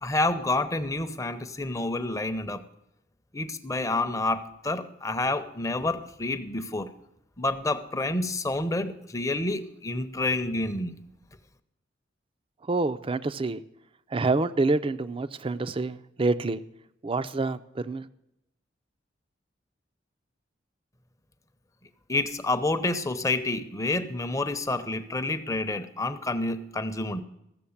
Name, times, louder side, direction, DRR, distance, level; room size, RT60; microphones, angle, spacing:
voice 1, 0.0-2.6 3.3-6.9 7.4-11.0 22.1-27.2, left 2 dB, 20° left, 10 dB, 0.7 m, -28 dB
voice 2, 12.7-13.6 14.1-16.6 17.0-18.1, right 3 dB, 30° right, 13 dB, 0.5 m, -27 dB
14.5 x 7.3 x 7.2 m, 0.83 s
head